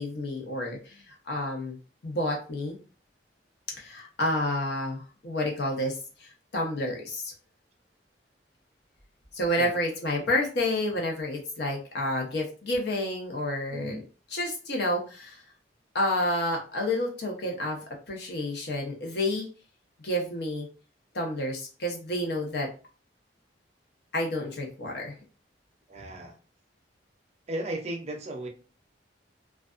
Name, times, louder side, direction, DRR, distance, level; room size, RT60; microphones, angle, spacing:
voice 1, 0.0-1.8 2.0-2.8 3.8-7.3 9.3-14.0 14.3-15.4 15.9-19.5 20.0-20.7 21.1-22.7 24.1-25.1, left 1 dB, 60° left, 0 dB, 0.8 m, -30 dB
voice 2, 13.7-14.0 25.9-26.4 27.5-28.5, right 1 dB, 35° right, 2 dB, 0.5 m, -35 dB
2.4 x 2.2 x 2.4 m, 0.35 s
head